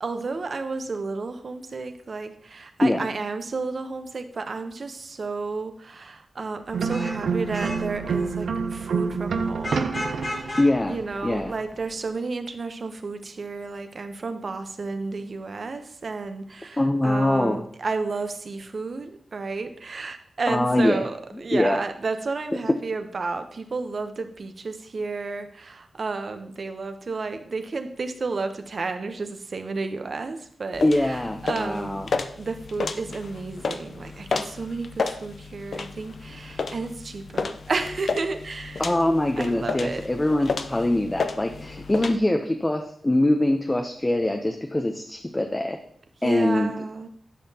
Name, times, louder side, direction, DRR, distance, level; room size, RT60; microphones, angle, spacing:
voice 1, 0.0-10.0 10.4-10.6 10.9-32.0 32.4-38.9 39.4-40.0 46.2-47.1, right 3 dB, 60° right, 8 dB, 0.8 m, -32 dB
Vehicle horn car horn honking / Traffic noise roadway noise, 6.7-11.9, left 1 dB, 40° left, 1.5 m, -37 dB
sound 1, 6.7-10.7, right 5 dB, 85° right, 0.5 m, -27 dB
voice 2, 10.6-11.0 11.2-11.5 16.8-17.6 20.5-21.0 21.5-21.8 30.8-32.1 38.8-45.8 46.2-46.7, left 1 dB, 20° left, 4 dB, 0.6 m, -23 dB
sound 2, 30.7-42.2, left 4 dB, 70° left, 0.5 m, -32 dB
10.0 x 5.7 x 2.8 m, 0.63 s
cardioid pair, 70°, 0 cm